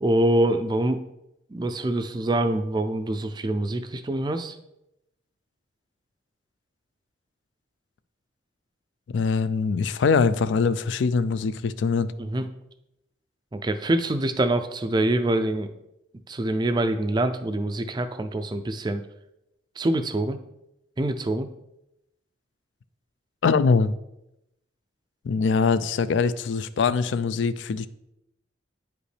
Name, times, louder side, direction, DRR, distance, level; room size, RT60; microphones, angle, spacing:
voice 1, 0.0-1.0 1.5-4.6 12.2-12.5 13.5-15.7 16.3-19.0 19.8-20.4 21.0-21.5, right 1 dB, 20° right, 9 dB, 0.3 m, -25 dB
voice 2, 9.1-12.1 23.4-23.9 25.2-27.9, left 5 dB, 75° left, 15 dB, 0.4 m, -23 dB
8.9 x 5.1 x 3.3 m, 0.86 s
head